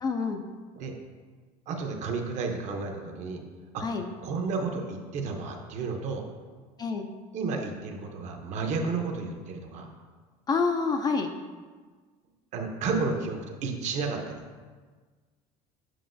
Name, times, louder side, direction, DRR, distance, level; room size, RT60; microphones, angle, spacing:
voice 1, 0.0-0.4 3.8-4.1 6.8-7.1 10.5-11.3, left 4 dB, 25° left, 5 dB, 0.3 m, -27 dB
voice 2, 1.7-3.4 3.7-3.8 4.2-6.2 7.3-9.9 12.5-14.5, right 4 dB, 50° right, 3 dB, 0.7 m, -32 dB
7.7 x 4.7 x 2.6 m, 1.5 s
cardioid pair, 140°, 16 cm